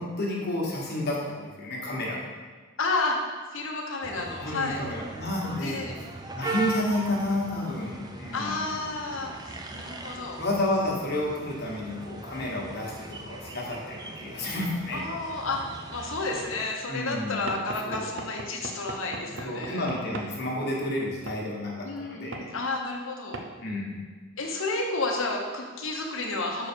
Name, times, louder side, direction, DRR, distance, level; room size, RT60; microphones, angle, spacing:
voice 1, 0.0-2.3 4.4-6.1 6.3-8.6 10.4-15.1 16.9-17.4 17.8-18.1 19.4-22.5 23.6-24.0, left 1 dB, 50° left, -3 dB, 1.4 m, -31 dB
voice 2, 2.8-3.2 3.5-4.8 5.6-5.9 8.3-10.4 14.9-19.8 21.8-23.4 24.4-26.7, left 3 dB, 65° left, 1 dB, 1.0 m, -31 dB
sound 1, 4.0-16.7, right 3 dB, 20° right, 0.4 m, -39 dB
Knock / Wood, 17.5-20.4 21.3-21.4 22.3-22.5 23.3-23.5, right 2 dB, 60° right, 0.6 m, -38 dB
6.3 x 4.7 x 4.4 m, 1.4 s
head